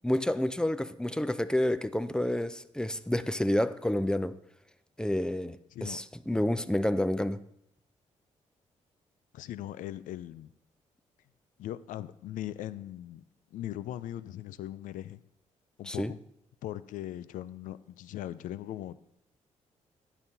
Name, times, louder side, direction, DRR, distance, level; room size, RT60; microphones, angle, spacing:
voice 1, 0.0-4.4 5.0-7.4 15.9-16.1, left 1 dB, 5° left, 0.5 m, -29 dB
voice 2, 5.7-6.0 6.3-6.4 9.3-10.5 11.6-13.2 13.5-15.2 15.8-16.2 16.6-19.0, left 13 dB, 80° left, 0.4 m, -39 dB
11.5 x 9.0 x 2.7 m
supercardioid pair, 60°, 13 cm